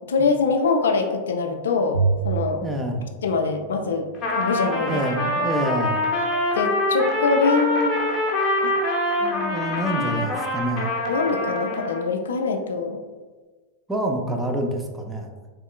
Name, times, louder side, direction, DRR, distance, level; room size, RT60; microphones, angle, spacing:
voice 1, 0.1-2.6 3.2-4.1 4.4-5.0 5.4-5.5 6.5-7.9 8.6-8.7 11.1-13.0, left 4 dB, 65° left, 4 dB, 0.3 m, -23 dB
Bowed string instrument, 1.9-4.3, right 5 dB, 80° right, 0.6 m, -28 dB
voice 2, 2.6-3.0 4.9-6.0 9.2-10.9 13.9-15.3, equal, 10° right, 2 dB, 0.4 m, -27 dB
Trumpet, 4.1-12.0, left 1 dB, 30° left, 0.7 m, -25 dB
3.5 x 3.1 x 2.3 m, 1.3 s
figure-of-eight pair, 90°, 0 cm